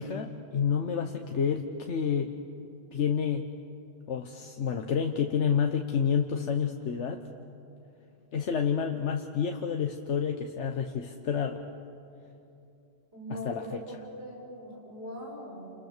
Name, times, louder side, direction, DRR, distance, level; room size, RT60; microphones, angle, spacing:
voice 1, 0.0-2.3 2.9-3.4 4.1-7.2 8.3-11.7 13.3-13.8, left 7 dB, 85° left, 5 dB, 1.3 m, -29 dB
voice 2, 13.1-13.8 14.1-15.7, equal, 65° right, -2 dB, 6.8 m, -41 dB
30.0 x 28.0 x 6.7 m, 2.7 s
omnidirectional pair, 1.2 m